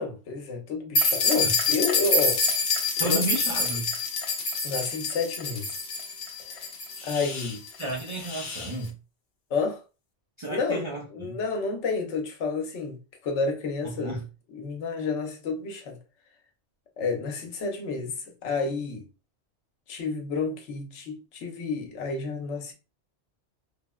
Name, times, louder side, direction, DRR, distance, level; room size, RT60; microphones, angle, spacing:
voice 1, 0.0-2.4 3.0-3.2 4.6-5.7 6.5-6.7 7.0-7.6 9.5-9.8 10.5-10.8 11.1-14.2 14.5-16.0 17.0-18.1 18.4-19.0 19.9-22.7, left 4 dB, 90° left, 1.0 m, -30 dB
sound 1, 1.0-8.7, left 3 dB, 65° left, 0.7 m, -27 dB
voice 2, 3.0-3.9 7.8-8.9 10.4-11.4 13.8-14.2, right 2 dB, 50° right, 0.3 m, -33 dB
3.3 x 2.1 x 2.2 m
omnidirectional pair, 1.2 m